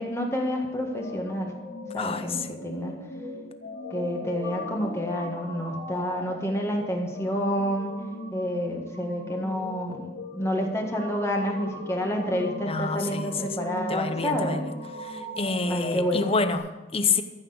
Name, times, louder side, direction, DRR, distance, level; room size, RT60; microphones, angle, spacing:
voice 1, 0.0-1.5 1.9-2.9 3.9-7.9 8.3-14.6 15.7-16.3, equal, 15° left, 1 dB, 1.7 m, -29 dB
sound 1, 0.9-16.6, left 1 dB, 90° left, 2.6 m, -39 dB
voice 2, 2.0-2.5 12.7-13.3 13.9-14.7 15.0-17.2, left 4 dB, 35° left, 10 dB, 0.8 m, -28 dB
14.0 x 6.3 x 8.0 m, 1.2 s
head